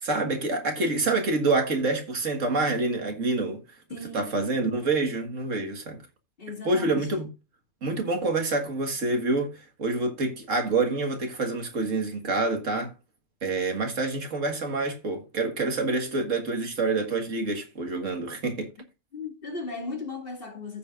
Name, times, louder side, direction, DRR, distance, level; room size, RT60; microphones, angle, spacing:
voice 1, 0.0-3.6 3.9-6.0 6.6-7.3 7.8-12.9 13.4-18.7, right 3 dB, 80° right, 2.1 m, -27 dB
voice 2, 3.9-4.3 6.4-7.1 19.1-20.8, left 3 dB, 45° left, 2.5 m, -37 dB
14.5 x 6.9 x 2.5 m
omnidirectional pair, 1.3 m